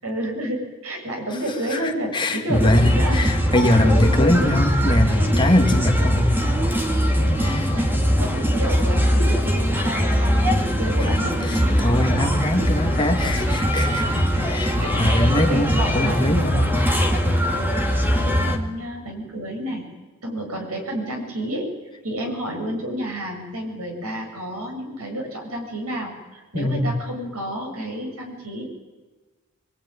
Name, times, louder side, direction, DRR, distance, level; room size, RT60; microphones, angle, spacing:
voice 1, 0.0-3.2 3.8-4.5 5.0-5.4 7.2-7.9 8.2-11.7 12.6-13.0 13.4-13.7 14.0-16.7 17.2-17.8 18.2-19.8 20.2-21.7 22.0-28.6, equal, 80° right, 2 dB, 7.5 m, -30 dB
voice 2, 1.7-6.5 7.4-7.7 11.5-16.7 26.5-26.9, left 1 dB, 20° left, 2 dB, 2.4 m, -22 dB
sound 1, 2.5-18.6, equal, 10° right, 2.3 m, -21 dB
24.5 x 22.0 x 9.9 m, 1.3 s
head